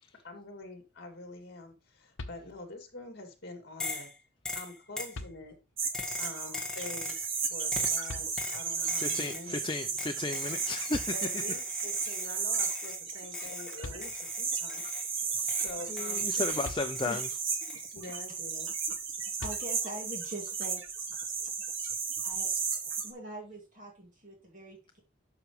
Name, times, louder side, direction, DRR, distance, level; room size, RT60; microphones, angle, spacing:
voice 1, 0.2-4.1 4.5-5.6 6.2-9.6 11.1-16.7 17.9-18.7, left 2 dB, 50° left, 2.4 m, -46 dB
sound 1, 2.2-2.9 4.4-4.5 5.1-5.9 8.1-8.8 10.6-10.7 10.9-11.8 13.5-13.6 13.8-14.6 16.6-17.4 19.4-20.2, left 2 dB, 65° left, 1.0 m, -45 dB
sound 2, 3.8-4.1 4.4-5.2 5.9-7.3 7.7-8.0 8.4-9.5 10.0-12.3 12.6-13.0 13.3-15.1 15.5-17.3 17.6-17.9, left 2 dB, 5° left, 1.6 m, -40 dB
sound 3, 5.8-23.1, right 6 dB, 65° right, 1.7 m, -34 dB
voice 2, 8.8-11.1 15.3-15.6 15.9-17.3, left 3 dB, 25° left, 0.5 m, -35 dB
voice 3, 19.4-20.8 22.2-22.5 23.0-25.0, right 1 dB, 40° right, 2.3 m, -43 dB
11.5 x 5.9 x 3.2 m
head